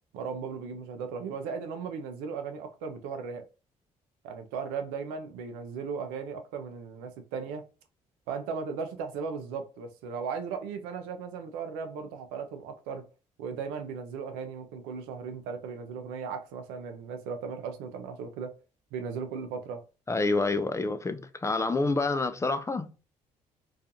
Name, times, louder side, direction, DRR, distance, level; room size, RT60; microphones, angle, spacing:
voice 1, 0.1-3.5 4.2-7.6 8.3-13.1 13.4-18.6 18.9-19.8, right 5 dB, 85° right, 0.5 m, -37 dB
voice 2, 20.1-22.9, left 3 dB, 20° left, 0.3 m, -28 dB
2.4 x 2.3 x 2.6 m
hypercardioid pair, 55°, 16 cm